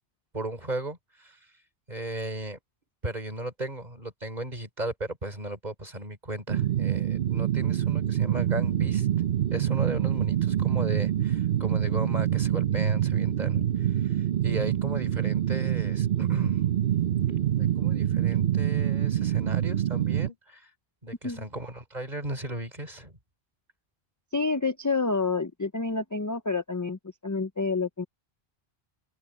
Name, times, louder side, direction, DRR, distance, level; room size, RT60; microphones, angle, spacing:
voice 1, 0.3-1.4 1.9-2.6 3.0-9.1 9.5-14.2 14.4-16.6 17.6-20.7 21.0-23.2, right 1 dB, 40° right, 4.3 m, -36 dB
sound 1, 6.5-20.3, right 11 dB, 60° right, 0.9 m, -26 dB
voice 2, 24.3-28.0, left 4 dB, 20° left, 0.5 m, -28 dB
open air
omnidirectional pair, 1.1 m